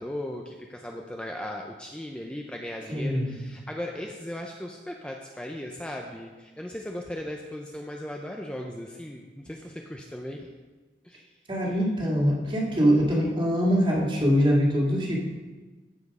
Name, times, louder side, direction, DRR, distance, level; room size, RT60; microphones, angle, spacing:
voice 1, 0.0-10.5 11.0-11.3, left 1 dB, 5° left, 1 dB, 0.6 m, -37 dB
voice 2, 2.9-3.3 11.5-15.2, equal, 30° right, -3 dB, 2.2 m, -23 dB
14.5 x 5.2 x 5.4 m, 1.3 s
head